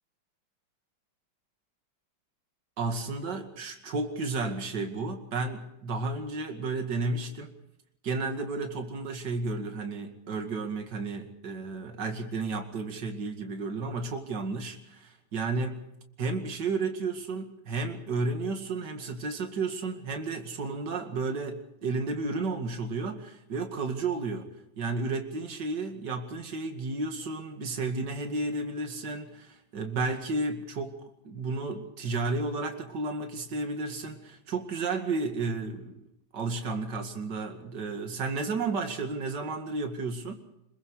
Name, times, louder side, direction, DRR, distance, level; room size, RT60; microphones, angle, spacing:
voice 1, 2.8-7.5 8.0-15.8 16.2-36.1 36.3-40.3, right 3 dB, 55° right, 4 dB, 2.8 m, -32 dB
27.0 x 22.0 x 4.8 m, 0.81 s
omnidirectional pair, 2.3 m